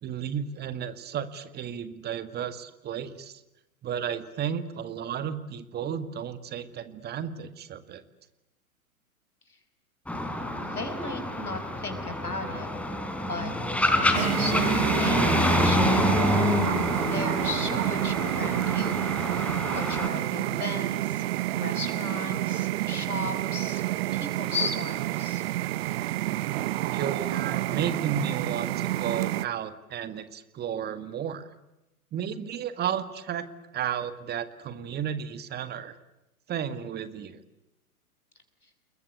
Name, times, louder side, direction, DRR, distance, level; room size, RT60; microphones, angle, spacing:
voice 1, 0.0-3.4 3.8-8.0 26.9-31.5 32.1-33.5 33.7-35.9 36.5-37.4, right 8 dB, 20° right, 12 dB, 1.8 m, -33 dB
sound 1, 10.1-20.1, left 1 dB, 5° left, 3.7 m, -27 dB
voice 2, 10.6-12.7 13.2-13.5 13.9-16.4 17.0-19.0 19.7-21.2 21.5-23.8 24.1-25.4, left 2 dB, 90° left, 8 dB, 5.5 m, -36 dB
sound 2, 14.1-29.5, right 16 dB, 45° right, 0.9 m, -29 dB
30.0 x 21.5 x 8.3 m, 0.94 s
figure-of-eight pair, 105°, 44 cm